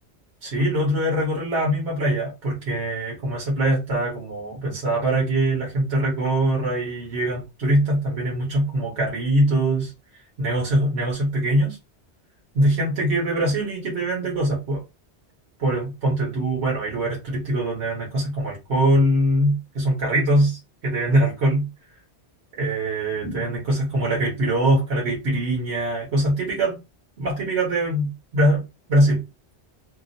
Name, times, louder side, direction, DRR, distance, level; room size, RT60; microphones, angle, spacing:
voice 1, 0.4-9.9 10.4-11.8 12.5-14.8 15.6-21.7 22.6-26.8 27.2-28.6 28.9-29.2, right 1 dB, 70° right, -3 dB, 1.3 m, -22 dB
2.9 x 2.4 x 2.5 m, 0.24 s
omnidirectional pair, 1.2 m